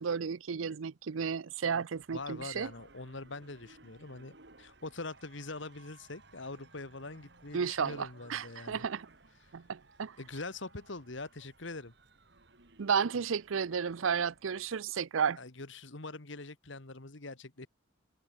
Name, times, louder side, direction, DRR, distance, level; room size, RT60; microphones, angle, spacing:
voice 1, 0.0-2.7 7.5-9.1 9.5-10.2 12.8-15.4, right 6 dB, 85° right, 0.5 m, -33 dB
sound 1, 1.9-14.8, right 3 dB, 55° right, 2.6 m, -60 dB
voice 2, 2.1-8.8 10.2-11.9 15.4-17.7, left 3 dB, 70° left, 1.8 m, -43 dB
head